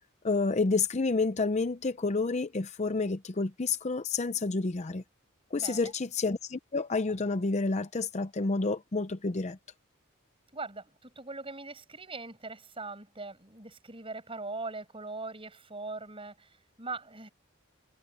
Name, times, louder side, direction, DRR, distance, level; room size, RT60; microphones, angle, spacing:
voice 1, 0.2-5.0 5.5-9.6, left 3 dB, 35° left, 0.6 m, -29 dB
voice 2, 5.5-5.9 10.5-17.3, right 3 dB, 25° right, 7.5 m, -41 dB
head